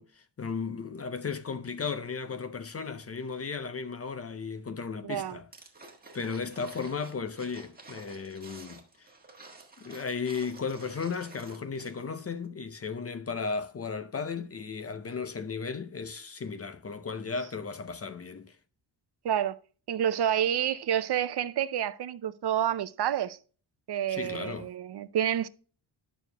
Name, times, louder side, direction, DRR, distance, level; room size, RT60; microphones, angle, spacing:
voice 1, 0.0-5.5 6.1-9.1 9.8-18.6 24.1-24.7, left 5 dB, 30° left, 0.6 m, -35 dB
voice 2, 5.0-5.4 19.2-19.6 19.9-23.4 23.9-25.5, right 10 dB, 60° right, 0.6 m, -29 dB
sound 1, 5.5-12.2 12.4-12.5, right 3 dB, 20° right, 1.6 m, -50 dB
11.0 x 6.2 x 3.3 m
wide cardioid pair, 150°, 46 cm